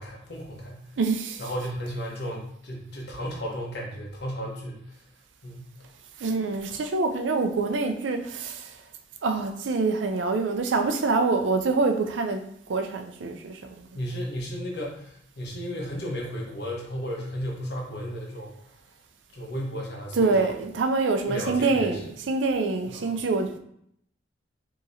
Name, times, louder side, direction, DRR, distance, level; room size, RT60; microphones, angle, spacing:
voice 1, 0.0-0.9 1.4-5.0 5.4-5.7 13.9-18.5 19.3-20.6 21.3-22.0 22.9-23.2, equal, 65° left, 1.1 m, -34 dB
voice 2, 1.0-1.4 6.2-8.7 9.2-13.9 20.2-23.6, right 3 dB, 85° right, 0.5 m, -26 dB
4.8 x 3.0 x 2.7 m
head